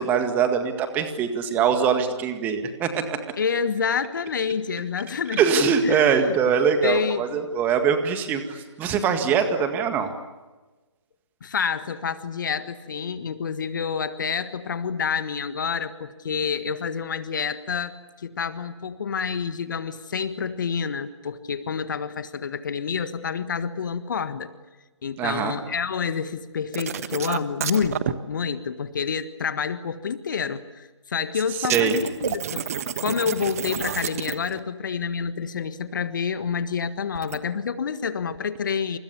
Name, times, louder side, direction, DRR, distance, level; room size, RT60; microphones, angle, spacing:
voice 1, 0.0-3.2 5.4-10.1 25.2-25.6 31.6-31.9, right 6 dB, 10° right, 7 dB, 1.9 m, -22 dB
voice 2, 3.4-5.4 5.8-6.3 6.8-7.4 11.4-24.5 25.0-32.6 33.0-39.0, left 6 dB, 40° left, 12 dB, 1.6 m, -28 dB
sound 1, 26.7-28.1 31.6-34.6 37.1-37.4, right 9 dB, 30° right, 1.3 m, -29 dB
29.0 x 28.5 x 7.0 m, 1.2 s
figure-of-eight pair, 150°, 16 cm